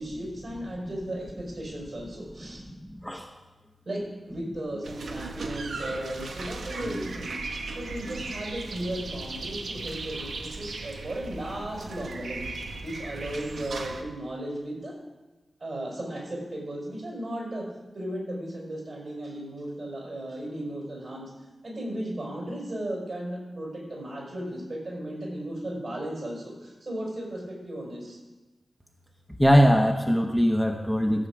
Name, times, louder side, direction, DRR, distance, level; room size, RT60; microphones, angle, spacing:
voice 1, 0.0-2.6 3.9-4.0 4.3-7.4 7.7-12.4 12.8-14.9 15.6-17.6 17.9-21.3 21.6-28.2, right 1 dB, 55° right, -2 dB, 5.3 m, -35 dB
sound 1, 4.8-14.0, right 3 dB, 90° right, 1.1 m, -37 dB
voice 2, 29.4-31.3, equal, ahead, 2 dB, 1.0 m, -21 dB
14.5 x 7.4 x 6.1 m, 1.1 s
wide cardioid pair, 85°, 0 cm